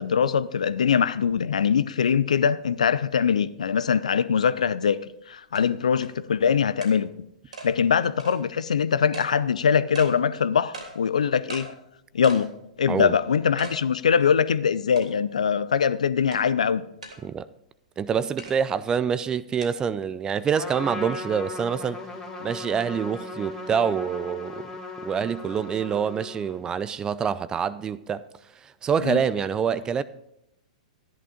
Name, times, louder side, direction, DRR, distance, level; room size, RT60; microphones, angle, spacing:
voice 1, 0.0-5.0 5.3-7.1 7.6-11.7 12.1-16.8 29.0-29.2, left 7 dB, 65° left, 0.6 m, -22 dB
sound 1, 4.8-4.9 5.5-5.6 6.0-6.1 6.8-6.9 7.5-7.7 8.2-8.4 9.1-9.3 9.9-10.1 10.7-10.9 11.5-11.7 12.2-12.5 12.9-13.0 13.6-13.8 14.2-14.3 15.0-15.3 16.3-16.4 17.0-17.2 18.4-18.5 19.6-19.7, right 3 dB, 70° right, 3.1 m, -39 dB
voice 2, 18.0-22.0 22.4-24.7 25.0-28.2 28.6-30.0, right 7 dB, 20° right, 0.4 m, -26 dB
Trumpet, 20.5-26.7, left 2 dB, 15° left, 2.5 m, -37 dB
13.5 x 11.0 x 5.1 m
figure-of-eight pair, 105°, 4 cm